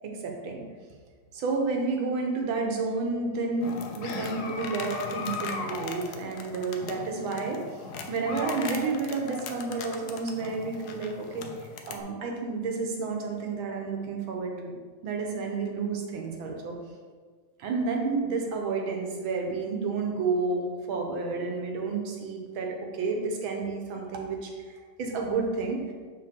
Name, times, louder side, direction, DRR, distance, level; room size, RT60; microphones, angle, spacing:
voice 1, 0.0-0.6 1.3-7.8 8.1-14.8 15.0-16.8 17.6-25.9, right 4 dB, 75° right, 1 dB, 1.8 m, -31 dB
sound 1, 3.6-12.0, left 4 dB, 70° left, 1.0 m, -38 dB
7.5 x 4.8 x 3.6 m, 1.5 s
omnidirectional pair, 2.3 m